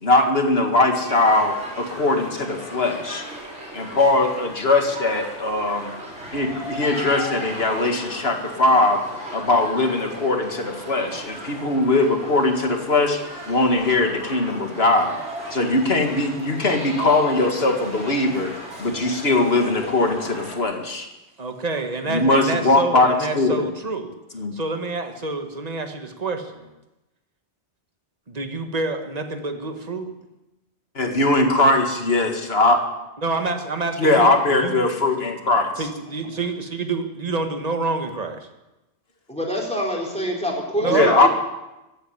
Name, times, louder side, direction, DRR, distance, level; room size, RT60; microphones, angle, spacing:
voice 1, 0.0-3.2 3.7-5.9 6.3-9.0 9.3-15.2 15.5-18.5 18.8-21.1 22.1-23.7 24.3-24.5 31.0-32.8 34.0-35.7 40.9-41.3, left 2 dB, 60° left, 4 dB, 2.2 m, -20 dB
sound 1, 1.0-20.6, equal, 90° right, 4.2 m, -36 dB
voice 2, 21.4-24.2 24.5-26.7 28.3-30.1 33.2-34.8 35.8-38.5 40.8-41.3, right 3 dB, 35° right, 6 dB, 1.6 m, -27 dB
voice 3, 39.3-41.3, equal, 5° left, 0 dB, 4.0 m, -26 dB
15.5 x 9.2 x 9.8 m, 1.0 s
omnidirectional pair, 1.2 m